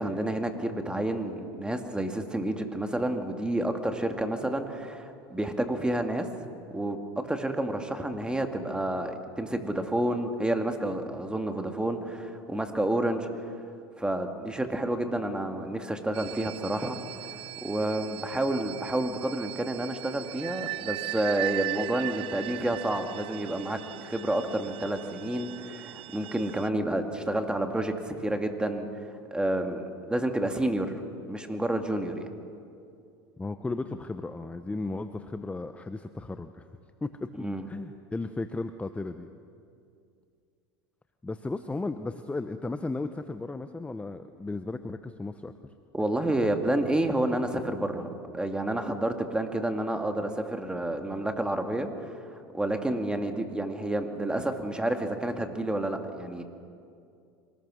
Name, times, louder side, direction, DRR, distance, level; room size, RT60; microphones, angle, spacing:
voice 1, 0.0-6.3 6.7-7.0 7.2-13.4 14.0-17.0 17.6-28.9 29.3-30.9 31.3-32.3 37.4-37.7 45.9-56.4, right 1 dB, 5° right, 5 dB, 2.2 m, -29 dB
sound 1, 16.1-26.7, right 17 dB, 45° right, 0.6 m, -39 dB
voice 2, 33.4-36.6 37.0-39.3 41.2-45.5, left 3 dB, 10° left, 9 dB, 0.8 m, -35 dB
25.0 x 20.0 x 6.4 m, 2.4 s
hypercardioid pair, 95°, 12 cm